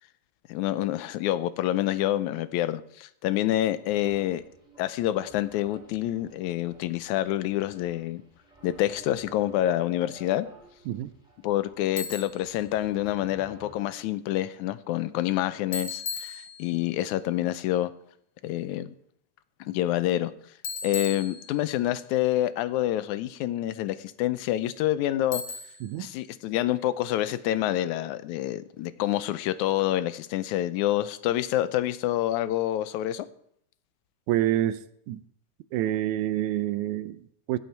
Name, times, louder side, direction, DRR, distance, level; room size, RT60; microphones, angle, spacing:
voice 1, 0.5-4.4 4.8-8.2 8.6-10.5 11.4-17.9 18.4-18.9 19.6-20.3 20.8-25.4 26.0-33.3, left 14 dB, 80° left, 2.0 m, -27 dB
sound 1, 3.9-13.8, right 1 dB, ahead, 3.9 m, -52 dB
Bicycle, 12.0-12.5 15.7-16.9 20.6-21.9 25.3-26.0, left 4 dB, 60° left, 0.9 m, -36 dB
voice 2, 34.3-34.8 35.1-35.2 35.7-37.6, right 13 dB, 80° right, 1.9 m, -27 dB
16.0 x 8.5 x 4.5 m
omnidirectional pair, 3.6 m